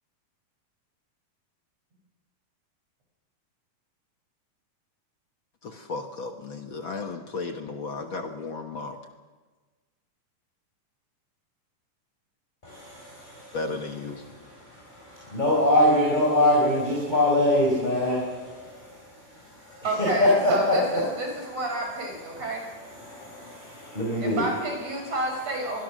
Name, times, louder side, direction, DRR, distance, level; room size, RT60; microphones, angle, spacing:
voice 1, 5.6-9.0 13.5-14.2, left 3 dB, 55° left, 5 dB, 1.5 m, -34 dB
voice 2, 12.6-13.6 14.3-19.9 20.2-21.0 22.3-24.4 25.0-25.1, left 1 dB, 10° left, -3 dB, 4.9 m, -24 dB
voice 3, 19.8-22.6 24.2-25.8, right 2 dB, 50° right, 2 dB, 6.7 m, -30 dB
24.5 x 20.5 x 6.3 m, 1.3 s
omnidirectional pair, 3.9 m